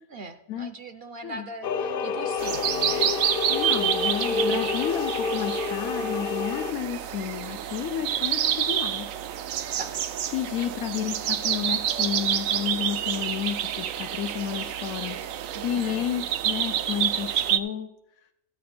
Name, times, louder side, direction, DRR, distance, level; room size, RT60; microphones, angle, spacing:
voice 1, 0.1-3.1 4.3-4.7 9.8-10.0 15.5-16.1, right 3 dB, 55° right, 9 dB, 0.8 m, -40 dB
sound 1, 1.6-6.7, left 5 dB, 55° left, 0.7 m, -28 dB
sound 2, 2.4-17.6, right 10 dB, 75° right, 1.0 m, -28 dB
voice 2, 3.5-9.1 10.3-17.9, left 10 dB, 85° left, 6 dB, 1.1 m, -31 dB
13.5 x 8.4 x 4.3 m, 0.86 s
omnidirectional pair, 1.4 m